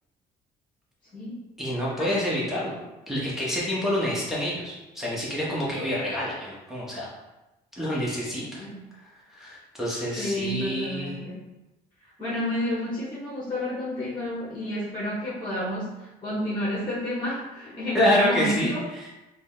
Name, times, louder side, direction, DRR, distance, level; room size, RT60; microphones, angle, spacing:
voice 1, 1.6-2.8 3.1-7.1 7.8-8.6 9.3-11.1 17.9-18.7, left 1 dB, ahead, -7 dB, 0.9 m, -27 dB
voice 2, 8.4-8.9 10.1-11.4 12.2-18.9, left 1 dB, 30° left, -7 dB, 1.2 m, -30 dB
3.8 x 2.1 x 3.7 m, 1.0 s
cardioid pair, 110°, 17 cm